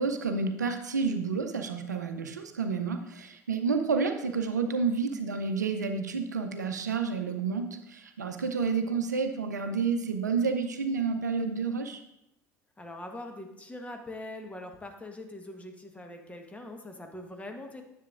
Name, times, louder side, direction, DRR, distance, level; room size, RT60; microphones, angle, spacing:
voice 1, 0.0-12.0, right 5 dB, 85° right, 7 dB, 0.6 m, -30 dB
voice 2, 12.8-17.8, left 1 dB, 15° left, 4 dB, 1.2 m, -42 dB
10.0 x 6.9 x 2.5 m, 0.86 s
hypercardioid pair, 70°, 9 cm